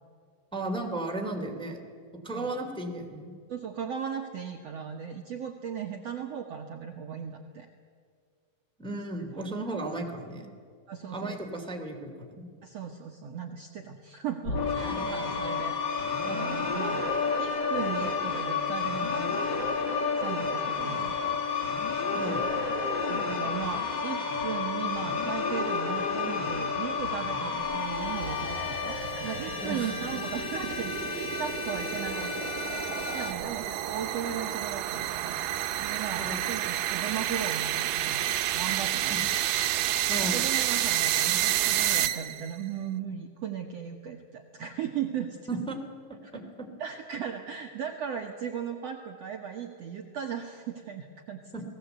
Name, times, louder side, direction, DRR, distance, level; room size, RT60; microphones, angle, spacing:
voice 1, 0.5-1.8 2.1-3.4 8.8-10.5 11.1-12.5 14.9-15.1 22.1-22.5 29.6-29.9 36.2-36.5 39.1-39.2 40.1-40.4 45.5-45.8 46.1-46.7 51.5-51.6, right 2 dB, ahead, 2 dB, 2.2 m, -35 dB
voice 2, 3.5-7.7 10.9-11.5 12.6-19.5 20.2-21.4 23.1-35.4 35.8-39.3 39.8-45.4 46.8-51.4, right 8 dB, 60° right, 3 dB, 2.0 m, -37 dB
sound 1, 14.4-33.3, left 4 dB, 35° left, 2.4 m, -31 dB
sound 2, 27.7-42.6, right 13 dB, 75° right, 2.4 m, -30 dB
30.0 x 19.5 x 8.1 m, 2.1 s
omnidirectional pair, 4.1 m